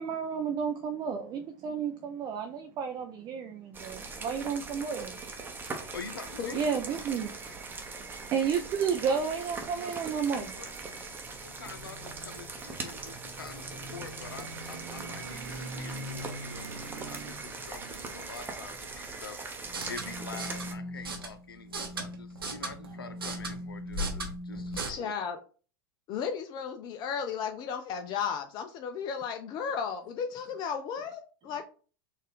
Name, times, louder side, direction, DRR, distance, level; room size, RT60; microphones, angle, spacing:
voice 1, 0.0-5.2 6.5-7.4 8.3-10.6, right 6 dB, 35° right, 0.4 m, -31 dB
sound 1, 3.7-20.8, right 3 dB, 15° right, 0.8 m, -41 dB
voice 2, 5.9-6.7 9.0-9.3 9.7-10.7 11.4-19.4 19.7-25.1, left 5 dB, 85° left, 0.6 m, -46 dB
sound 2, 11.2-19.4, right 1 dB, 55° right, 0.8 m, -45 dB
sound 3, 19.6-24.9, right 1 dB, 90° right, 0.9 m, -37 dB
voice 3, 24.9-25.4 26.1-31.6, left 6 dB, 40° left, 0.4 m, -34 dB
4.2 x 2.5 x 3.5 m
hypercardioid pair, 90°, 12 cm